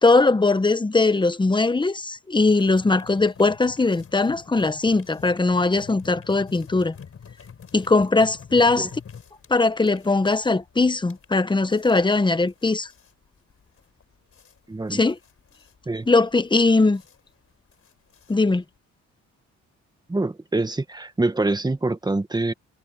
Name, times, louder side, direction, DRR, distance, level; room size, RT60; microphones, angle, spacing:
voice 1, 0.0-6.9 7.7-8.9 9.5-12.9 14.9-15.2 16.1-17.0 18.3-18.6, left 3 dB, 15° left, 1.1 m, -20 dB
sound 1, 2.5-18.8, left 7 dB, 50° left, 5.8 m, -46 dB
voice 2, 14.7-15.0 15.9-16.1 20.1-22.5, right 2 dB, 15° right, 1.5 m, -25 dB
cardioid pair, 90°, 30 cm